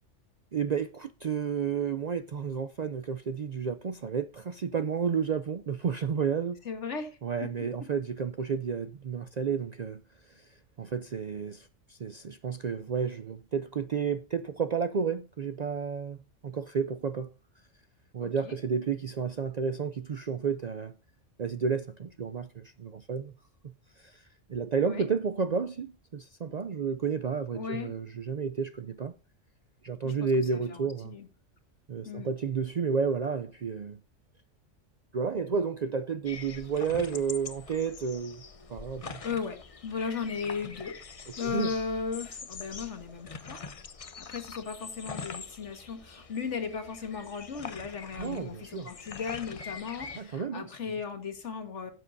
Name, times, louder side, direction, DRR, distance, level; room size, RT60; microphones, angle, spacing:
voice 1, 0.5-6.6 7.2-17.3 18.1-21.0 21.4-23.3 24.0-29.1 29.8-31.2 31.9-34.0 35.1-39.2 41.4-41.8 48.2-48.9 50.2-50.7, right 6 dB, 55° right, 0.5 m, -31 dB
voice 2, 6.7-7.5 18.2-18.5 24.8-25.0 27.5-27.9 30.0-31.3 32.1-32.3 39.2-39.6 39.8-41.0 41.4-43.6 44.2-51.9, left 5 dB, 70° left, 1.9 m, -36 dB
sound 1, 36.2-50.2, left 5 dB, 35° left, 0.7 m, -44 dB
17.0 x 7.6 x 2.6 m
omnidirectional pair, 1.3 m